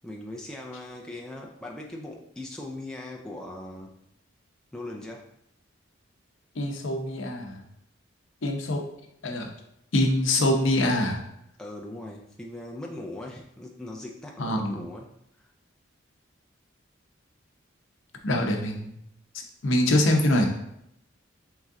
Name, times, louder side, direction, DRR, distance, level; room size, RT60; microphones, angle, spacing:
voice 1, 0.0-3.9 4.7-5.3 11.6-15.1 15.4-15.5, left 1 dB, 5° left, -2 dB, 0.3 m, -39 dB
voice 2, 6.6-7.6 8.4-8.8 9.2-9.5 9.9-11.2 14.4-14.8 18.2-19.0 19.3-20.5, left 1 dB, 70° left, 2 dB, 0.7 m, -24 dB
3.7 x 3.1 x 3.6 m, 0.78 s
head